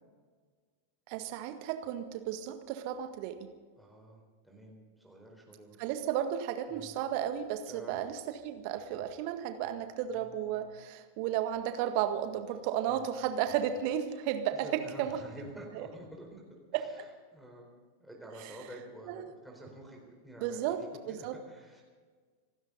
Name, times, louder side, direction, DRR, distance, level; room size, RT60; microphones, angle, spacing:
voice 1, 1.1-3.5 5.8-15.2 15.7-15.9 16.7-16.8 18.4-18.5 19.1-19.3 20.4-21.4, right 10 dB, 45° right, 8 dB, 1.7 m, -33 dB
voice 2, 3.8-5.8 6.7-6.9 7.7-8.0 10.2-10.7 12.8-13.1 14.5-16.4 16.7-17.7 18.0-20.8 21.1-21.8, right 1 dB, ahead, -2 dB, 4.1 m, -49 dB
26.5 x 12.5 x 4.1 m, 1.5 s
figure-of-eight pair, 90°, 0 cm